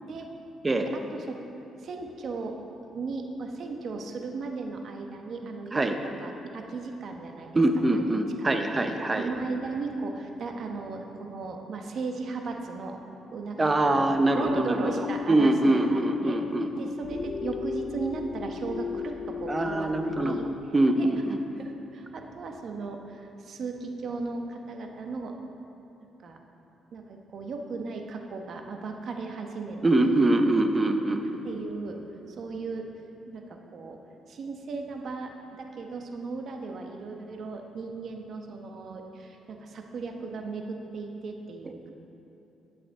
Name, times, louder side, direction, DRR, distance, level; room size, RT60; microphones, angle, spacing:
voice 1, 0.9-1.4 1.8-2.6 2.9-7.5 7.8-8.1 8.4-13.0 13.3-14.0 14.4-16.4 16.8-20.5 21.0-21.1 21.6-25.3 26.0-26.4 26.9-30.2 31.4-32.0 32.3-32.9 33.3-34.0 34.3-41.9, right 4 dB, 60° right, 3 dB, 0.9 m, -36 dB
voice 2, 7.5-9.3 13.6-14.9 15.3-16.7 19.5-20.4 20.7-21.4 29.8-31.5, right 2 dB, 25° right, 6 dB, 0.7 m, -24 dB
sound 1, 13.6-20.7, left 6 dB, 65° left, 0.4 m, -35 dB
11.0 x 7.7 x 3.7 m, 2.8 s
cardioid pair, 90°, 0 cm